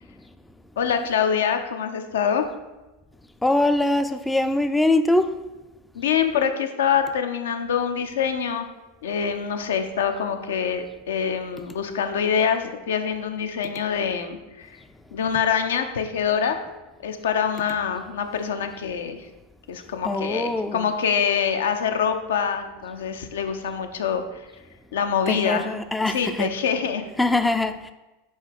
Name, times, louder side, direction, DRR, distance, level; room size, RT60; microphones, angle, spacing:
voice 1, 0.8-2.5 6.0-8.7 9.0-14.7 15.1-16.7 17.0-19.3 19.7-24.2 24.9-25.7 26.1-27.0, left 7 dB, 75° left, 0.7 m, -25 dB
voice 2, 3.4-5.3 20.0-20.9 25.3-26.5 27.2-27.9, left 2 dB, 10° left, 0.4 m, -22 dB
5.3 x 4.8 x 5.2 m
hypercardioid pair, 90°, 0 cm